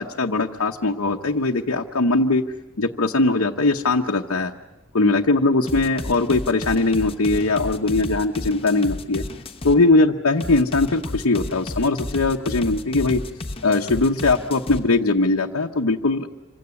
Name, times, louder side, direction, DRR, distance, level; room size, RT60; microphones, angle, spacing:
voice 1, 0.0-2.4 2.8-4.5 4.9-9.2 9.6-13.2 13.6-16.3, left 2 dB, 70° left, 1 dB, 0.9 m, -20 dB
sound 1, 5.7-9.8 10.4-14.8, left 1 dB, 25° left, 1.0 m, -32 dB
26.0 x 16.5 x 9.7 m, 1.1 s
head